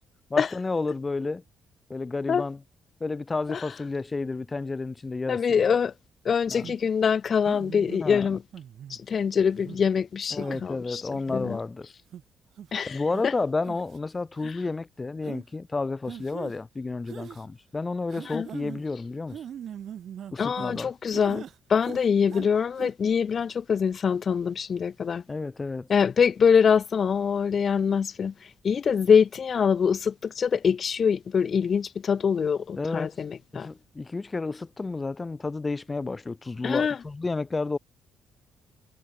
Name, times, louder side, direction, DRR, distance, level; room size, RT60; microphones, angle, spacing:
voice 1, 0.3-1.4 1.9-2.6 3.0-5.4 6.5-6.7 8.0-8.4 10.3-11.9 12.9-19.4 20.3-20.9 25.3-25.9 32.8-33.2 33.5-37.8, left 3 dB, 25° left, 1.0 m, -31 dB
voice 2, 5.3-5.9 6.2-8.4 8.9-11.6 12.7-13.3 14.4-14.6 18.3-18.5 20.4-21.4 21.7-25.2 25.9-33.7 36.6-37.0, left 6 dB, 45° left, 0.7 m, -24 dB
sound 1, 6.6-6.8 7.4-8.0 8.5-9.0 9.5-9.8 10.4-10.6 11.1-11.6 12.1-12.2 12.6-12.8 13.1-13.2 13.6-14.0 14.4-14.5 15.2-15.4 16.1-16.6 17.1-17.4 18.1-18.8 19.3-20.8 21.1-21.5 21.8-22.5 22.7-22.9, right 9 dB, 65° right, 1.4 m, -41 dB
cardioid pair, 90°, 0 cm